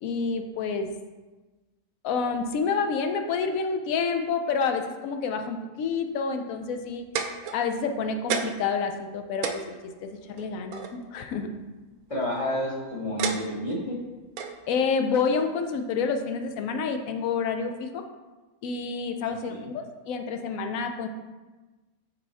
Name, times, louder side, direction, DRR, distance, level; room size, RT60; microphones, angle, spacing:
voice 1, 0.0-0.9 2.0-7.0 7.5-11.5 14.7-18.0 18.6-21.1, left 5 dB, 75° left, 6 dB, 1.0 m, -28 dB
sound 1, 6.8-7.9 8.3-8.7 9.1-9.2 9.4-10.9 12.0-12.4 13.2-13.8 14.4-14.6 15.4-15.5, right 6 dB, 85° right, 1.1 m, -31 dB
voice 2, 12.1-14.0 19.2-19.7, left 1 dB, 25° left, -1 dB, 1.0 m, -30 dB
5.5 x 4.7 x 4.1 m, 1.2 s
omnidirectional pair, 1.5 m